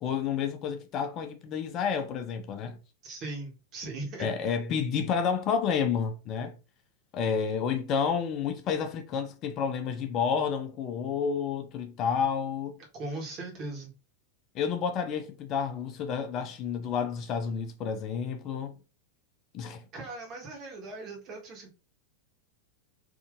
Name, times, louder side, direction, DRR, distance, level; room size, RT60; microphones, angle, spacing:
voice 1, 0.0-2.8 4.2-6.5 7.1-12.8 14.5-18.7 19.5-19.8, left 6 dB, 35° left, 0.4 m, -30 dB
voice 2, 3.0-4.3 12.9-13.9 19.9-21.7, right 2 dB, 35° right, 1.3 m, -39 dB
3.4 x 2.6 x 2.5 m
figure-of-eight pair, 90°, 0 cm